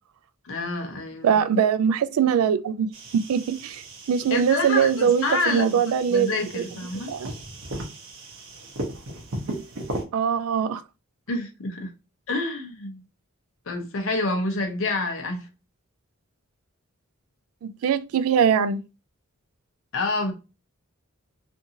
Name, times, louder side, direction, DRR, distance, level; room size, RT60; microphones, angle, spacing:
voice 1, 0.4-1.3 4.3-5.8 6.1-7.1 11.3-11.9 12.3-13.0 13.7-15.5 19.9-20.3, left 2 dB, 65° left, 0.7 m, -28 dB
voice 2, 1.2-2.9 3.3-6.3 6.5-6.6 7.1-7.3 10.1-10.8 17.6-18.8, right 7 dB, 80° right, 0.3 m, -22 dB
sound 1, 2.9-10.0, right 1 dB, 65° right, 0.8 m, -37 dB
2.6 x 2.5 x 2.7 m
head